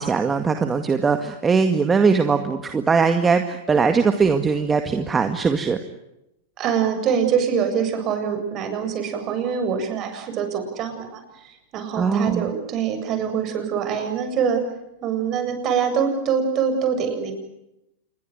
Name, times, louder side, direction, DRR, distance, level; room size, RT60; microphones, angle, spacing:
voice 1, 0.0-5.8 12.0-12.5, right 5 dB, 20° right, 7 dB, 2.0 m, -20 dB
voice 2, 6.6-14.6 15.0-17.3, right 7 dB, 40° right, 7 dB, 7.7 m, -24 dB
28.0 x 22.5 x 9.3 m, 0.86 s
hypercardioid pair, 105°, 0 cm